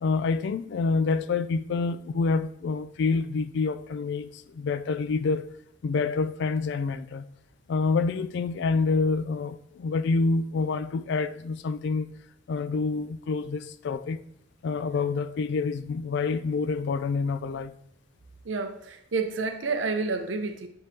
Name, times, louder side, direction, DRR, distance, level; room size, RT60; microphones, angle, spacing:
voice 1, 0.0-5.5 5.8-7.3 7.7-12.1 12.5-14.2 14.6-17.7, left 4 dB, 65° left, 0.3 m, -27 dB
voice 2, 18.4-20.7, right 4 dB, 80° right, 0.7 m, -29 dB
7.6 x 5.3 x 2.8 m
head